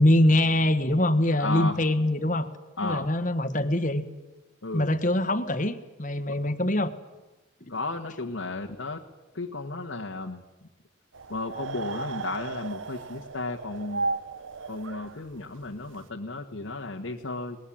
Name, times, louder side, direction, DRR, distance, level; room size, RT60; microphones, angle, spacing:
voice 1, 0.0-2.5 2.8-4.1 4.7-6.9 7.6-7.7, left 1 dB, 40° left, 11 dB, 1.5 m, -23 dB
voice 2, 1.4-1.8 2.8-3.1 4.6-4.9 6.3-6.4 7.7-9.0 9.3-10.4 11.3-14.1 14.7-17.6, left 3 dB, 85° left, 1 dB, 1.6 m, -34 dB
sound 1, 11.1-16.0, right 3 dB, 80° right, 1.1 m, -35 dB
23.5 x 20.5 x 8.8 m, 1.1 s
head